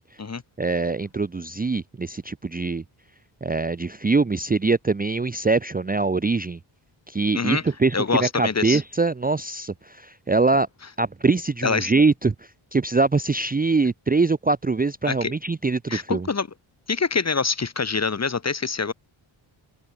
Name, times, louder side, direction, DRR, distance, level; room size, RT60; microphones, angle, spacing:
voice 1, 0.6-2.8 3.4-6.6 7.1-10.7 11.0-12.3 12.7-16.3, right 3 dB, 20° right, 0.6 m, -23 dB
voice 2, 7.9-8.8 11.6-11.9 15.0-15.3 15.9-16.5 16.9-18.9, left 5 dB, 30° left, 1.5 m, -25 dB
open air
wide cardioid pair, 110°, 49 cm